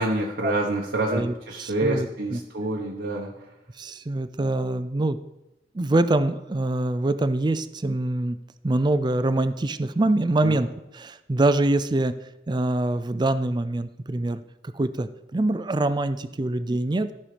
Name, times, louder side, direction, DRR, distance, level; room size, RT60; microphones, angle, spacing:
voice 1, 0.0-3.3 10.4-10.5, right 2 dB, 80° right, -2 dB, 1.1 m, -27 dB
voice 2, 1.6-2.4 3.8-5.2 5.7-8.4 8.6-10.7 10.9-12.1 12.5-14.4 14.7-17.1, right 2 dB, 25° right, 13 dB, 0.4 m, -24 dB
14.5 x 5.6 x 5.0 m, 0.92 s
head